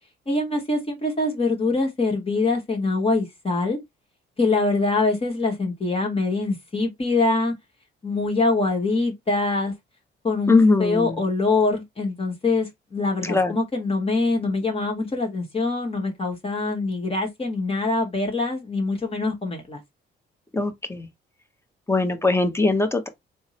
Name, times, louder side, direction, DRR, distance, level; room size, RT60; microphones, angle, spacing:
voice 1, 0.3-3.8 4.4-7.5 8.0-9.7 10.2-19.8, left 3 dB, 30° left, 1.3 m, -24 dB
voice 2, 10.5-11.2 13.2-13.5 20.5-21.1 21.9-23.1, left 3 dB, 15° left, 0.9 m, -21 dB
3.5 x 2.1 x 4.1 m
cardioid pair, 90°, 20 cm